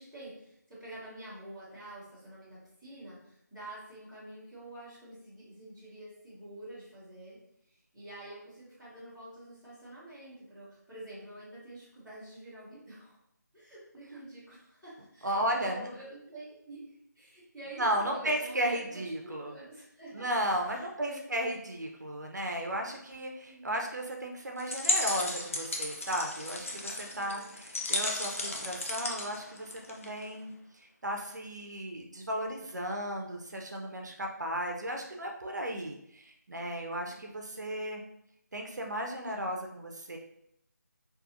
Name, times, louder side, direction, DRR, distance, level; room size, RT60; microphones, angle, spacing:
voice 1, 0.0-7.4 7.7-13.2 13.5-20.3 20.6-21.2 22.9-23.0 23.5-23.7 27.1-27.5 37.1-37.4, right 1 dB, 5° left, -17 dB, 0.9 m, -48 dB
voice 2, 15.2-15.9 17.8-19.5 20.1-38.0 38.5-40.2, right 1 dB, 70° right, 2 dB, 0.5 m, -35 dB
sound 1, 24.6-30.2, left 1 dB, 45° left, 0.4 m, -34 dB
2.7 x 2.4 x 2.5 m, 0.75 s
figure-of-eight pair, 160°, 10 cm